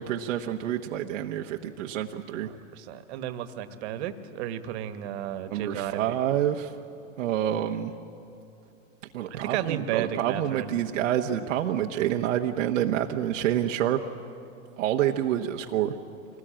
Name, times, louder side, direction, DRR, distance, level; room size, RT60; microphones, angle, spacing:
voice 1, 0.0-2.5 5.5-6.7 7.2-7.9 9.1-14.0 14.8-15.9, right 11 dB, 80° right, 2 dB, 1.1 m, -27 dB
voice 2, 2.4-6.2 9.3-10.7, right 11 dB, 60° right, 10 dB, 1.6 m, -33 dB
25.0 x 19.5 x 8.9 m, 2.8 s
hypercardioid pair, 130°, 38 cm